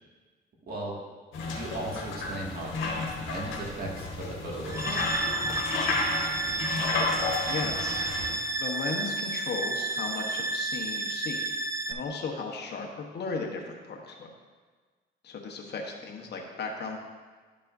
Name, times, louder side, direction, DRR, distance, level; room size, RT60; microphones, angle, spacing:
voice 1, 0.7-1.0 1.4-5.0, right 1 dB, 50° right, -3 dB, 2.1 m, -37 dB
sound 1, 1.3-8.3, left 3 dB, 85° left, 1.4 m, -32 dB
sound 2, 4.7-11.9, right 2 dB, 15° right, 0.5 m, -31 dB
voice 2, 7.5-8.1 8.5-11.4 11.9-14.3 15.2-17.0, left 4 dB, 55° left, 1 dB, 1.2 m, -36 dB
11.5 x 5.4 x 2.7 m, 1.5 s
cardioid pair, 80°, 20 cm